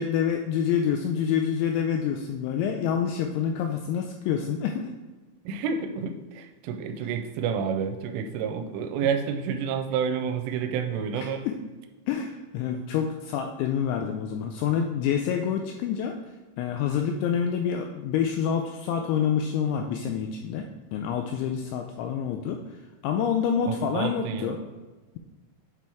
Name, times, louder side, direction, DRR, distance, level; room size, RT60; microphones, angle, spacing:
voice 1, 0.0-4.9 11.2-11.6 12.1-16.2 16.6-22.6 23.0-24.6, left 8 dB, 85° left, 4 dB, 2.6 m, -27 dB
voice 2, 5.5-11.5 23.7-24.6, right 6 dB, 85° right, 7 dB, 3.1 m, -29 dB
8.5 x 3.5 x 4.4 m, 1.3 s
omnidirectional pair, 5.7 m